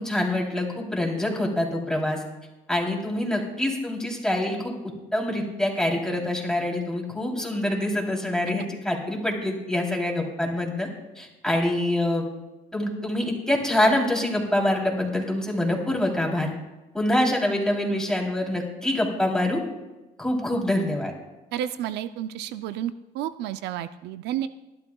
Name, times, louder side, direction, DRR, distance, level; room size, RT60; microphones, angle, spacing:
voice 1, 0.0-2.2 2.7-4.7 5.1-10.9 11.1-12.2 12.7-16.5 16.9-19.6 20.2-21.1, left 1 dB, 5° left, 0 dB, 3.3 m, -25 dB
voice 2, 21.5-24.5, right 11 dB, 85° right, 12 dB, 0.5 m, -31 dB
24.5 x 11.5 x 2.3 m, 1.1 s
cardioid pair, 110°, 17 cm